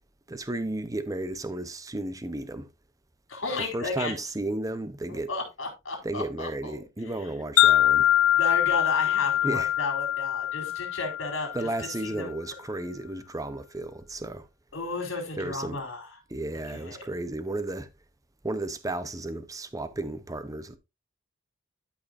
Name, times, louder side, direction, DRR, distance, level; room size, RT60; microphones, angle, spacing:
voice 1, 0.3-2.7 3.7-5.3 6.0-8.1 9.4-9.7 11.5-14.5 15.4-15.8 16.3-17.9 18.4-20.8, right 2 dB, 15° right, 0.8 m, -33 dB
voice 2, 3.3-4.1 5.1-6.8 8.4-11.7 12.0-12.3 14.7-16.1 16.5-17.0, left 3 dB, 75° left, 4.1 m, -33 dB
Wind chime, 7.6-11.9, left 13 dB, 90° left, 0.5 m, -23 dB
12.5 x 5.7 x 2.5 m
head